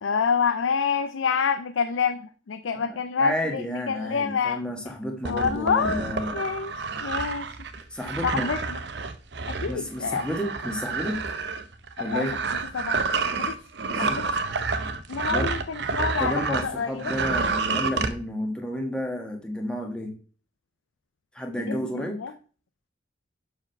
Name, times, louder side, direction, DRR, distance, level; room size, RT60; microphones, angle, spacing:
voice 1, 0.0-4.6 5.3-6.1 6.3-6.7 7.0-7.5 8.2-8.8 9.5-10.3 12.1-12.2 12.7-13.0 13.4-13.5 14.0-14.3 15.1-17.1 21.7-22.3, left 6 dB, 90° left, 11 dB, 0.5 m, -27 dB
voice 2, 2.7-6.5 7.9-8.5 9.7-11.3 12.0-12.4 13.9-14.2 15.3-15.6 16.2-20.2 21.3-22.2, equal, 5° left, 2 dB, 1.3 m, -31 dB
sound 1, 5.2-16.7 17.0-18.1, right 4 dB, 60° right, 0.7 m, -29 dB
6.0 x 4.9 x 6.5 m, 0.40 s
head